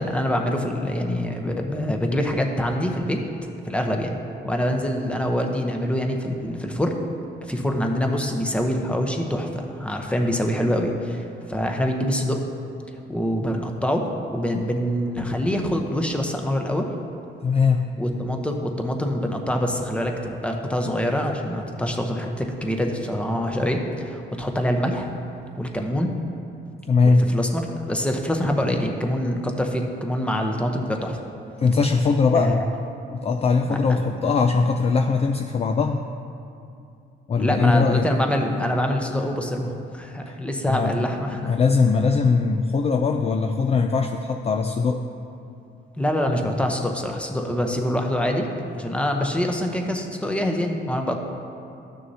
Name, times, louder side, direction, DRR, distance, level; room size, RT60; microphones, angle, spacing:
voice 1, 0.0-3.2 3.6-6.9 7.4-12.4 13.1-14.0 14.3-16.9 18.0-25.1 25.6-26.1 27.0-31.2 32.3-32.7 33.7-34.0 37.4-41.6 46.0-51.2, equal, 5° left, 2 dB, 0.9 m, -25 dB
voice 2, 17.4-17.9 26.9-27.3 31.6-32.6 33.1-36.0 37.3-38.1 40.3-40.4 40.6-40.9 41.4-45.0, left 4 dB, 30° left, 5 dB, 0.4 m, -20 dB
12.5 x 6.4 x 2.8 m, 2.7 s
cardioid pair, 90°, 20 cm